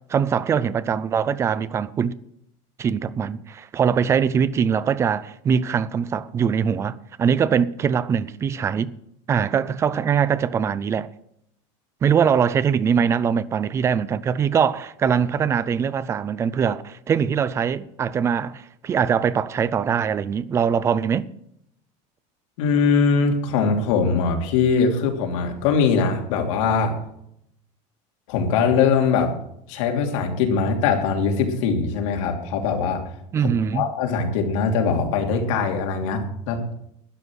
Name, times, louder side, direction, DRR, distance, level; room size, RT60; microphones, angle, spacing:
voice 1, 0.1-2.1 2.8-8.9 9.3-11.1 12.0-21.3 33.3-33.9, right 7 dB, 15° right, 0.4 m, -22 dB
voice 2, 22.6-26.9 28.3-29.3 29.7-33.0 33.4-36.6, left 5 dB, 80° left, 2.9 m, -21 dB
12.5 x 9.9 x 6.3 m
cardioid pair, 175°, 16 cm